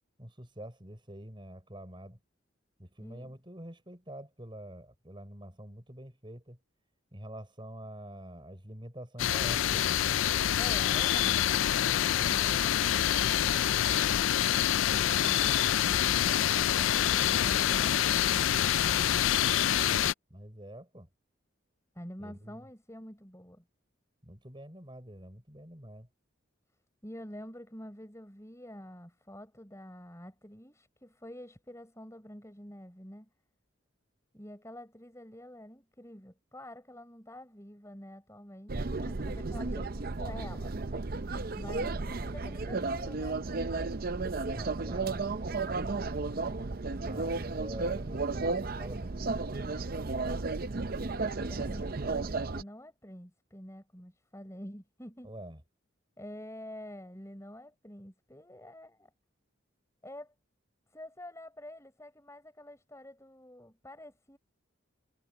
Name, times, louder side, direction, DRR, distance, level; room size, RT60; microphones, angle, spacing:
voice 1, 0.2-2.2 2.8-6.6 7.1-10.0 20.3-21.1 22.2-22.6 24.2-26.1 44.4-46.3 47.0-49.8 55.2-55.6, right 1 dB, 25° right, 6.1 m, -46 dB
voice 2, 3.0-3.3 10.5-14.2 22.0-23.6 27.0-33.3 34.3-40.7 41.5-43.4 51.2-55.3 56.2-59.1 60.0-60.3 60.9-64.4, left 1 dB, 15° left, 7.0 m, -48 dB
sound 1, 9.2-20.1, left 11 dB, 75° left, 0.4 m, -26 dB
sound 2, 38.7-52.6, right 3 dB, 45° right, 0.7 m, -33 dB
head